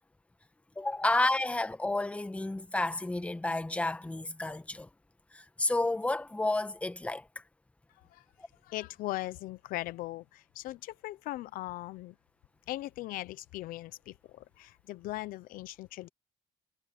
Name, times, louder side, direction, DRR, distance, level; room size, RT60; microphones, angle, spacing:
voice 1, 0.8-4.9 5.3-7.3, left 2 dB, 10° left, 1.2 m, -31 dB
voice 2, 8.6-12.2 12.7-16.1, left 16 dB, 80° left, 0.7 m, -39 dB
cardioid pair, 125°, 14 cm